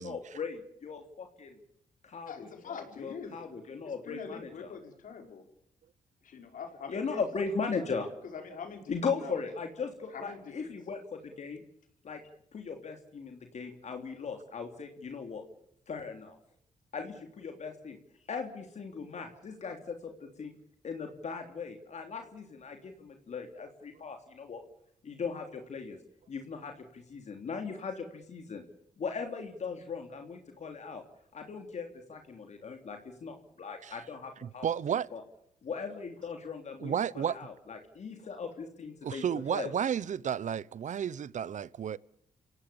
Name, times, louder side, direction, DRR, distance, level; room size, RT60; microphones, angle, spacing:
voice 1, 0.0-1.6 2.0-4.7 6.9-8.1 8.9-11.6 12.0-12.2 12.5-15.4 15.9-16.4 16.9-18.0 18.3-20.5 20.8-24.6 25.0-26.0 26.3-28.6 29.0-31.0 31.3-34.7 35.1-35.2 35.6-39.2 39.5-39.7, left 5 dB, 55° left, 3.2 m, -38 dB
voice 2, 2.3-3.4 3.9-5.4 6.2-7.2 8.2-8.9 9.2-9.4 10.1-10.7, left 6 dB, 75° left, 5.2 m, -44 dB
voice 3, 34.4-35.1 36.8-37.4 39.0-42.0, right 8 dB, 60° right, 0.9 m, -32 dB
29.0 x 17.5 x 7.1 m
cardioid pair, 85°, 14 cm